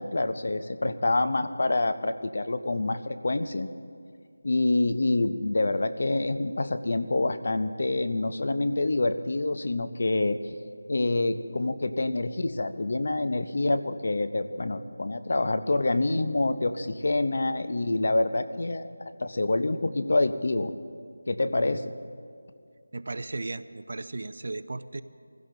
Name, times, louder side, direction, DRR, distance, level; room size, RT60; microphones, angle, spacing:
voice 1, 0.0-3.7 4.4-10.4 10.9-18.8 19.2-20.7 21.3-21.9, left 2 dB, 50° left, 10 dB, 0.8 m, -26 dB
voice 2, 22.9-25.0, right 2 dB, 50° right, 13 dB, 0.6 m, -36 dB
24.0 x 16.0 x 3.9 m, 2.3 s
figure-of-eight pair, 175°, 0 cm